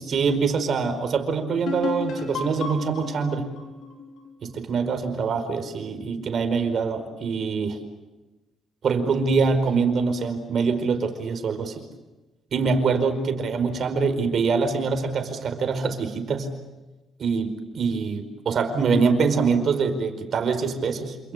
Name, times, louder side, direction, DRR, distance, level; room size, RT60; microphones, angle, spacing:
voice 1, 0.0-3.5 4.4-7.8 8.8-11.8 12.5-16.5 17.2-21.3, right 5 dB, 55° right, 8 dB, 4.9 m, -24 dB
sound 1, 1.7-5.2, left 4 dB, 75° left, 6.1 m, -33 dB
28.0 x 27.5 x 6.8 m, 1.1 s
cardioid pair, 90°, 0 cm